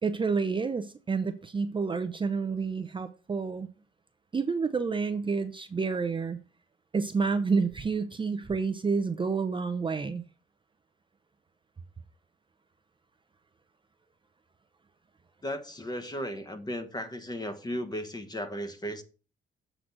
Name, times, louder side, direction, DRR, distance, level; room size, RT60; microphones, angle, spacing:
voice 1, 0.0-3.7 4.3-6.4 6.9-10.2, right 5 dB, 25° right, 0.6 m, -29 dB
voice 2, 15.4-19.0, equal, 20° left, 1.2 m, -35 dB
7.6 x 3.9 x 6.0 m
cardioid pair, 90°, 20 cm